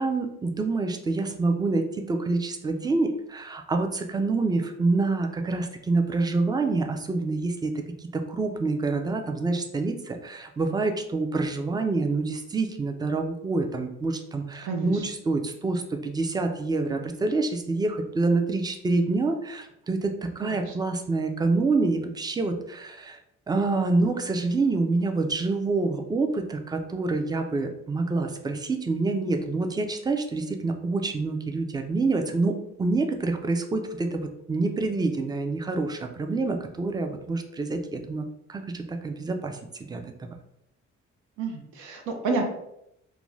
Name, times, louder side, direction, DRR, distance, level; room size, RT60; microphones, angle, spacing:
voice 1, 0.0-23.2 23.5-40.4, right 3 dB, 15° right, 5 dB, 0.3 m, -27 dB
voice 2, 14.6-15.0 20.4-20.7 41.4-42.4, right 4 dB, 85° right, 2 dB, 0.6 m, -30 dB
2.4 x 2.2 x 3.1 m, 0.79 s
cardioid pair, 90°, 30 cm